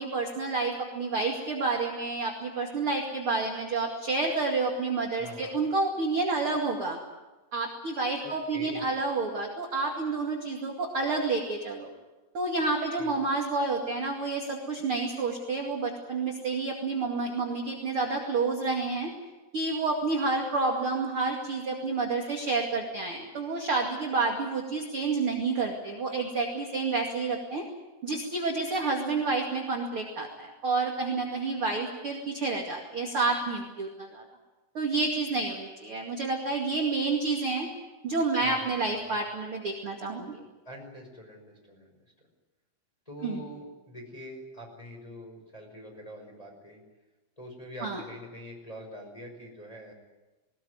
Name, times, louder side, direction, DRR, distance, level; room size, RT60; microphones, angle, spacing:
voice 1, 0.0-7.0 7.5-11.9 12.3-19.1 19.5-27.6 28.0-34.2 34.7-37.7 38.0-40.4 43.2-43.4 47.8-48.0, right 3 dB, 45° right, 0 dB, 1.9 m, -29 dB
voice 2, 5.2-5.6 8.2-9.0 13.0-13.2 38.4-39.1 40.6-41.9 43.1-46.8 47.4-49.9, equal, 5° left, 0 dB, 4.7 m, -44 dB
20.0 x 19.5 x 9.5 m, 1.1 s
omnidirectional pair, 5.9 m